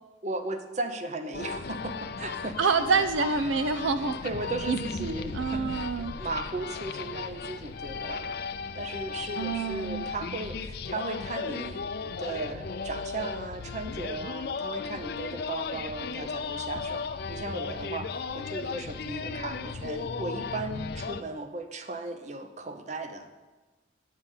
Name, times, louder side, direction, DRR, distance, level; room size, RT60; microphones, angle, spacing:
voice 1, 0.2-2.7 4.2-8.4 8.8-23.3, right 2 dB, 35° right, 7 dB, 0.7 m, -36 dB
sound 1, 1.3-21.2, left 5 dB, 55° left, 0.4 m, -36 dB
voice 2, 2.6-4.2 4.7-5.1 5.3-6.2 9.4-10.1, right 4 dB, 80° right, 10 dB, 0.5 m, -27 dB
9.1 x 5.7 x 8.2 m, 1.2 s
head